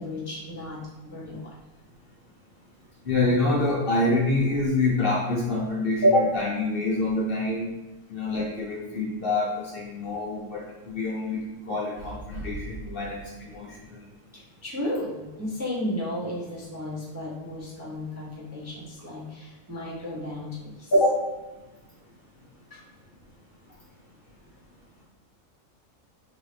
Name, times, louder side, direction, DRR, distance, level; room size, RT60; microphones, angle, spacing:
voice 1, 0.0-1.6 14.3-20.9 22.7-22.8, left 1 dB, 15° right, -7 dB, 0.6 m, -34 dB
voice 2, 3.0-7.7 8.1-14.0 20.9-21.3, left 2 dB, 50° left, -5 dB, 0.8 m, -25 dB
4.7 x 2.6 x 3.2 m, 1.1 s
omnidirectional pair, 1.5 m